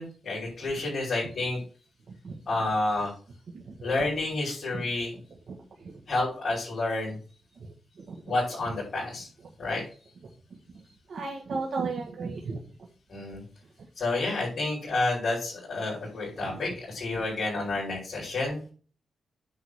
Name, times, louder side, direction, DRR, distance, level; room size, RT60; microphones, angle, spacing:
voice 1, 0.0-1.6 2.5-3.1 3.8-5.1 6.1-7.2 8.3-9.3 9.6-9.8 13.1-13.4 14.0-18.6, left 2 dB, 45° left, -7 dB, 5.4 m, -29 dB
voice 2, 11.1-12.6 16.4-16.5, right 4 dB, 60° right, -2 dB, 1.7 m, -33 dB
9.3 x 4.0 x 6.5 m, 0.40 s
wide cardioid pair, 115°, 0 cm